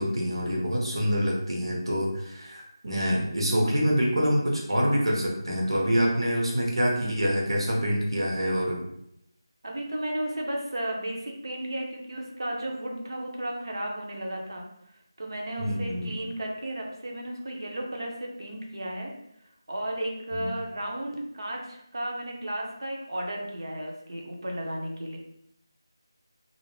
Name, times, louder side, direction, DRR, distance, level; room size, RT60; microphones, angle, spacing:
voice 1, 0.0-8.8 15.6-16.1 20.3-20.5, equal, 80° right, -3 dB, 1.0 m, -26 dB
voice 2, 9.6-19.1 19.7-25.2, right 1 dB, 60° right, 0 dB, 0.6 m, -34 dB
2.5 x 2.0 x 3.1 m, 0.76 s
figure-of-eight pair, 175°, 2 cm